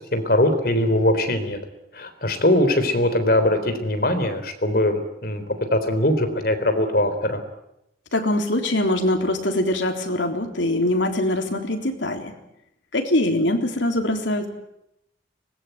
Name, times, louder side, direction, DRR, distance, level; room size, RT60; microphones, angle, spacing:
voice 1, 0.1-1.6 1.9-5.4 5.7-7.4, left 1 dB, 50° left, 8 dB, 3.8 m, -21 dB
voice 2, 8.1-12.3 12.9-14.5, left 1 dB, 90° left, 5 dB, 3.6 m, -23 dB
24.5 x 20.5 x 9.3 m, 0.84 s
head